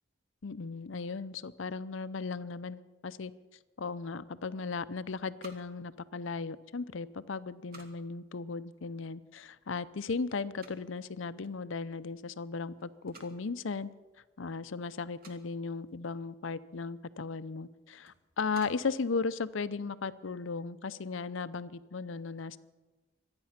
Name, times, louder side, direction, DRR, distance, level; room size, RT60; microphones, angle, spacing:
voice 1, 0.4-3.3 3.8-13.9 14.4-22.6, left 4 dB, 70° left, 15 dB, 0.6 m, -36 dB
sound 1, 4.8-20.1, right 3 dB, 45° right, 1.9 m, -60 dB
25.0 x 9.7 x 5.8 m, 1.2 s
head